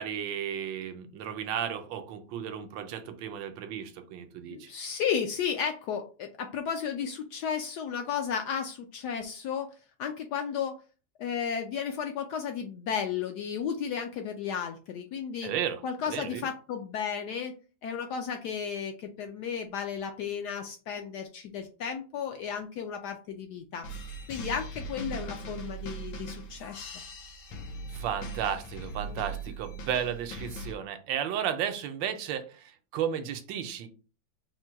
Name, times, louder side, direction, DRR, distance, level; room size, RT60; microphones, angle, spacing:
voice 1, 0.0-4.7 15.4-15.8 16.1-16.5 27.9-33.9, right 9 dB, 75° right, 8 dB, 1.3 m, -34 dB
voice 2, 4.5-9.7 10.0-10.8 11.2-15.5 15.8-17.5 17.8-23.9 24.3-26.9 29.0-29.3, left 7 dB, 75° left, 5 dB, 1.0 m, -33 dB
sound 1, 23.8-30.7, right 2 dB, 90° left, 1.6 m, -40 dB
4.4 x 2.2 x 4.4 m, 0.35 s
omnidirectional pair, 2.1 m